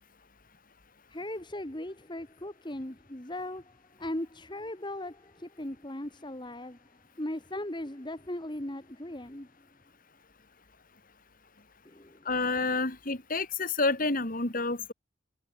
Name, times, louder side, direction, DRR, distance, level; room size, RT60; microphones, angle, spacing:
voice 1, 1.1-6.8 7.2-9.5 11.8-12.2, left 1 dB, 20° left, 1.6 m, -38 dB
voice 2, 12.3-14.9, left 3 dB, 40° left, 2.6 m, -29 dB
head